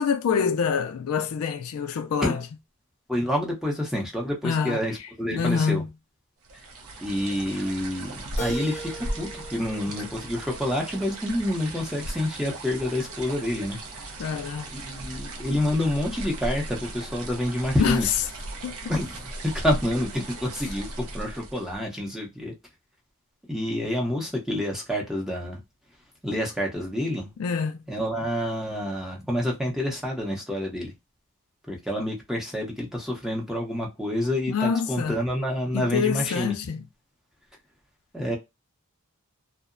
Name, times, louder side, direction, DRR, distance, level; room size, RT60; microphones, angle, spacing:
voice 1, 0.0-2.4 4.4-4.8 5.3-5.9 14.2-14.7 17.8-18.1 18.6-18.9 27.4-27.8 34.5-35.1 35.7-36.8, left 6 dB, 70° left, 0.3 m, -26 dB
voice 2, 3.1-5.8 7.0-13.8 14.7-18.1 18.9-22.5 23.5-25.6 26.2-27.3 27.9-30.9 31.7-36.5 38.1-38.4, left 1 dB, ahead, 0.7 m, -28 dB
sound 1, 6.4-21.8, right 1 dB, 70° right, 0.6 m, -37 dB
Keyboard (musical), 8.4-11.3, right 1 dB, 35° left, 0.8 m, -39 dB
2.7 x 2.1 x 2.5 m
head